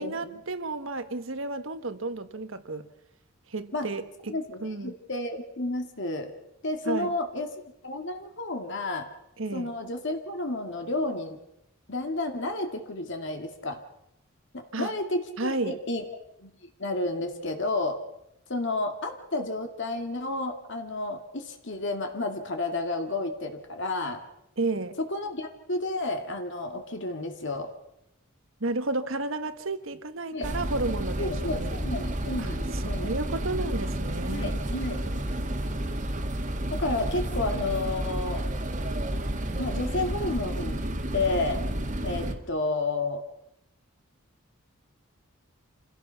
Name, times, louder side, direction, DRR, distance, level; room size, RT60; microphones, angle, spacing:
voice 1, 0.0-2.9 3.5-4.9 6.8-7.1 9.4-9.7 14.7-14.9 15.4-15.8 24.6-25.0 28.6-31.8 32.4-34.5, right 2 dB, 65° right, 1.4 m, -32 dB
voice 2, 4.3-6.3 6.6-7.5 7.8-9.1 9.5-11.4 11.9-13.8 14.5-16.0 16.4-16.5 16.8-18.0 18.5-24.2 25.0-27.7 30.3-30.5 31.2-33.1 34.3-35.0 36.7-38.4 39.6-40.8 41.1-41.6 42.0-43.2, left 2 dB, 55° left, 2.2 m, -31 dB
sound 1, 30.4-42.3, right 1 dB, 35° right, 1.9 m, -31 dB
27.5 x 16.5 x 5.8 m
head